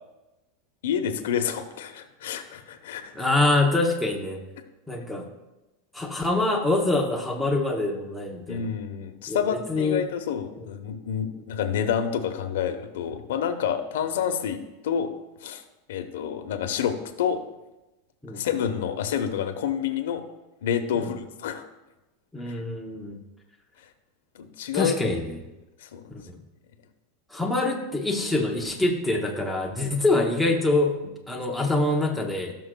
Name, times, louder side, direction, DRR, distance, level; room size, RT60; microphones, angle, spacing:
voice 1, 0.8-3.3 8.5-15.1 15.4-15.6 15.9-17.4 18.3-20.2 20.6-21.6 22.5-22.6 24.3-24.9 25.8-26.1, left 8 dB, 85° left, 7 dB, 0.9 m, -28 dB
voice 2, 3.1-4.5 4.9-5.3 5.9-8.7 9.3-10.0 10.6-10.7 18.2-18.5 20.9-21.1 22.3-23.2 24.7-25.4 26.3-26.4 27.3-32.5, left 2 dB, ahead, -1 dB, 0.7 m, -25 dB
17.0 x 6.2 x 2.2 m, 1.0 s
supercardioid pair, 175°, 0 cm